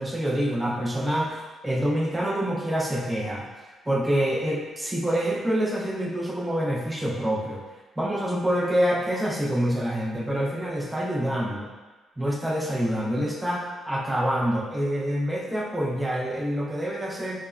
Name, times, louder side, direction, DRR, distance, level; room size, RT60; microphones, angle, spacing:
voice 1, 0.0-3.5 3.9-7.6 8.0-11.7 12.2-17.5, equal, 10° right, -2 dB, 0.5 m, -26 dB
3.3 x 2.0 x 2.3 m, 1.2 s
cardioid pair, 90°, 0 cm